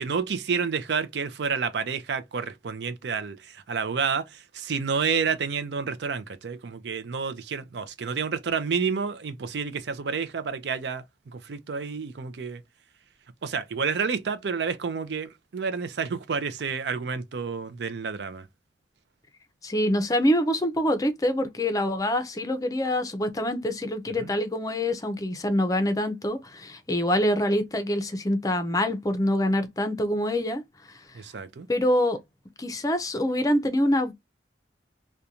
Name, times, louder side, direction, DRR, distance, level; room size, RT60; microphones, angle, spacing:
voice 1, 0.0-12.6 13.4-18.5 24.2-24.3 31.1-31.7, right 5 dB, 70° right, 0.5 m, -29 dB
voice 2, 19.6-30.6 30.9-31.0 31.7-32.2 32.6-34.1, left 1 dB, 20° left, 0.5 m, -25 dB
2.5 x 2.2 x 2.7 m
head